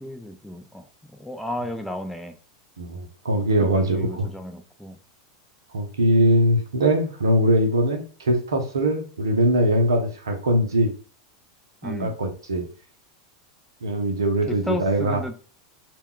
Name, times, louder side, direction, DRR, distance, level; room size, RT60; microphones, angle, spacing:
voice 1, 0.0-0.8 1.1-2.3 3.4-5.0 11.8-12.2 14.5-15.3, left 1 dB, 5° left, 6 dB, 0.4 m, -33 dB
voice 2, 2.8-4.3 5.7-10.9 11.8-12.7 13.8-15.2, equal, 85° right, 3 dB, 0.6 m, -21 dB
2.2 x 2.2 x 3.5 m, 0.38 s
hypercardioid pair, 95°, 2 cm